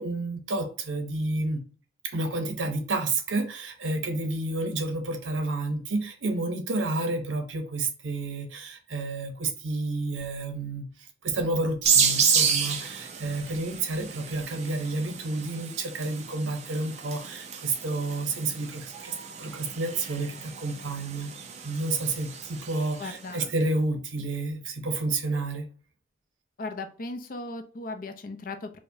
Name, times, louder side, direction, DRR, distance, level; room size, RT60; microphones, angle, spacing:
voice 1, 0.0-1.6 2.0-10.9 11.2-21.3 21.6-25.7, right 2 dB, 90° right, 6 dB, 0.7 m, -30 dB
sound 1, 11.8-23.2, right 6 dB, 35° right, 0.4 m, -30 dB
voice 2, 23.0-23.5 26.6-28.8, left 2 dB, 45° left, 6 dB, 0.5 m, -37 dB
4.7 x 2.1 x 2.6 m, 0.39 s
head